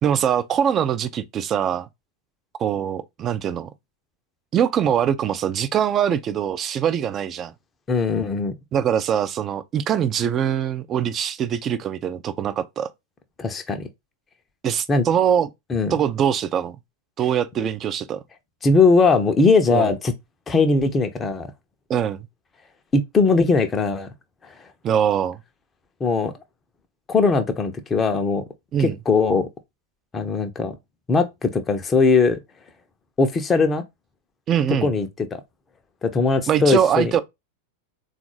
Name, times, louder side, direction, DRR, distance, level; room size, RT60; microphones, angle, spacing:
voice 1, 0.0-1.9 2.6-3.7 4.5-7.5 8.7-12.9 14.6-15.5 15.9-16.8 17.2-18.2 19.7-19.9 21.9-22.2 24.8-25.4 28.7-29.0 34.5-34.9 36.5-37.2, right 9 dB, 30° right, 0.4 m, -22 dB
voice 2, 7.9-8.5 13.4-13.9 14.9-15.1 15.7-15.9 18.6-20.1 20.5-21.5 22.9-24.1 26.0-26.3 27.1-28.4 28.8-29.5 30.1-30.7 31.1-32.4 33.2-33.8 34.8-35.1 36.0-37.1, left 4 dB, 20° left, 0.6 m, -19 dB
3.8 x 2.3 x 3.1 m
figure-of-eight pair, 90°, 0 cm